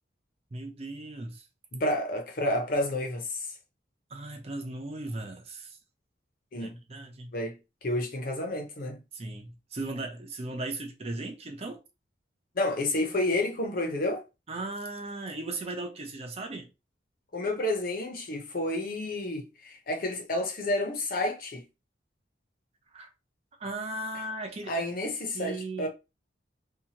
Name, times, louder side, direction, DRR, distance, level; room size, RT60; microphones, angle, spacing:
voice 1, 0.5-1.5 4.1-5.8 6.6-7.3 9.1-11.8 14.5-16.7 22.9-23.1 23.6-24.9 25.3-25.9, right 2 dB, 35° right, 0.6 m, -37 dB
voice 2, 1.7-3.5 6.5-6.8 7.3-7.6 7.8-9.0 12.6-14.2 17.3-21.6 24.7-25.9, left 1 dB, 50° left, 0.7 m, -30 dB
2.8 x 2.3 x 2.8 m
head